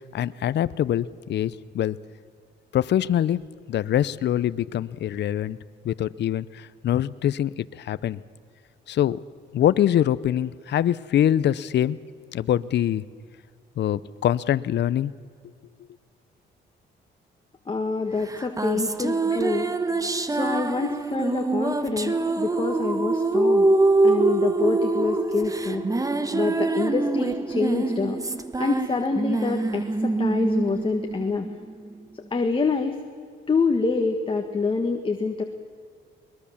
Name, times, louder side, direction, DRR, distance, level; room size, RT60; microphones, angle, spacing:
voice 1, 0.1-2.0 2.7-5.6 5.8-8.2 8.9-9.2 9.5-12.0 12.3-13.0 13.8-15.1, left 11 dB, 60° left, 17 dB, 0.7 m, -24 dB
voice 2, 17.7-19.7 20.3-23.6 24.0-25.8 26.3-28.2 28.6-31.5 32.1-33.0 33.5-35.4, left 4 dB, 25° left, 4 dB, 1.7 m, -26 dB
sound 1, 18.3-31.9, right 2 dB, 15° right, 1.3 m, -24 dB
22.0 x 21.0 x 7.2 m, 2.2 s
cardioid pair, 90°, 20 cm